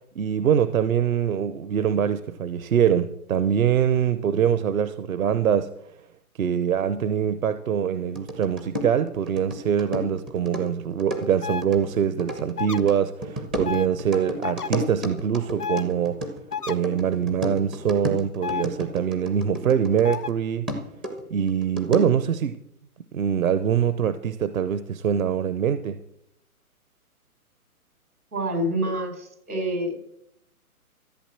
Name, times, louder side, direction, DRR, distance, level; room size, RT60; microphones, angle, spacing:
voice 1, 0.2-5.7 6.4-16.3 16.7-20.7 21.3-22.6 23.1-26.0, right 8 dB, 65° right, 0.9 m, -24 dB
sound 1, 8.2-20.3 20.7-22.3, equal, 5° right, 0.4 m, -33 dB
sound 2, 11.4-11.6 12.6-12.8 13.7-13.9 14.4-14.7 15.6-15.8 16.5-16.8 18.4-18.7 20.0-20.3, left 7 dB, 90° left, 1.0 m, -30 dB
voice 2, 28.3-30.0, right 1 dB, 90° right, 4.7 m, -27 dB
14.0 x 8.2 x 7.3 m
hypercardioid pair, 135°, 44 cm